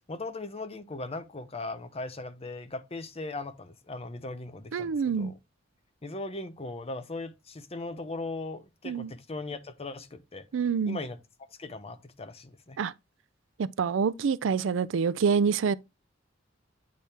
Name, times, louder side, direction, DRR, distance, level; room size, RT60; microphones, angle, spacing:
voice 1, 0.1-5.3 6.0-10.4 10.8-11.2 11.6-12.8, left 2 dB, 30° left, 0.7 m, -38 dB
voice 2, 4.7-5.3 8.8-9.1 10.5-11.0 12.8-12.9 13.6-15.8, right 6 dB, 90° right, 0.4 m, -26 dB
8.5 x 4.3 x 3.4 m
head